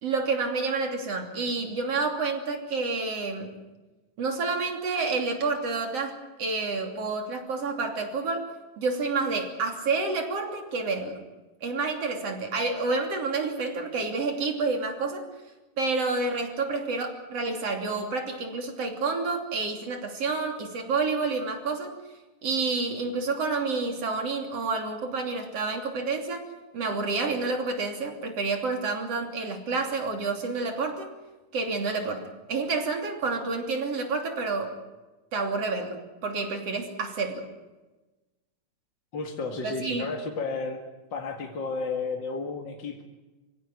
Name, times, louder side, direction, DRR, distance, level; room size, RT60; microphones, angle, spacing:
voice 1, 0.0-3.6 4.2-8.4 8.8-11.2 11.6-15.3 15.8-22.0 22.4-26.5 26.7-31.1 31.5-34.7 35.3-37.4 39.6-40.1, right 3 dB, 45° right, 4 dB, 3.8 m, -29 dB
voice 2, 39.1-40.8 41.1-43.0, left 4 dB, 40° left, 2 dB, 2.0 m, -32 dB
25.5 x 16.5 x 9.5 m, 1.1 s
omnidirectional pair, 3.9 m